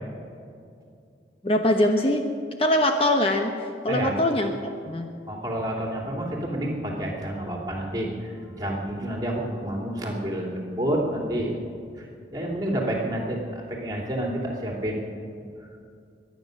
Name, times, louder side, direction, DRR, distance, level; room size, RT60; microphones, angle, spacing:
voice 1, 1.4-2.3 2.6-3.5 3.8-4.5 4.9-5.1, left 1 dB, 30° left, 4 dB, 0.9 m, -22 dB
voice 2, 5.3-11.5 11.9-15.1 15.6-15.7, right 1 dB, 20° right, -1 dB, 2.7 m, -29 dB
22.5 x 9.5 x 6.5 m, 2.4 s
head